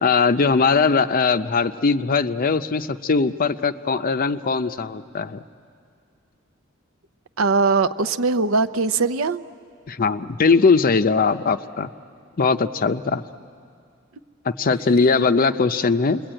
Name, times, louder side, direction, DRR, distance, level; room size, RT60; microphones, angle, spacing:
voice 1, 0.0-5.4 9.9-11.9 12.4-13.2 14.4-16.2, left 4 dB, 45° left, 11 dB, 0.6 m, -20 dB
voice 2, 7.4-9.4 14.7-14.8, right 4 dB, 75° right, 10 dB, 0.7 m, -21 dB
29.0 x 22.0 x 8.9 m, 2.3 s
head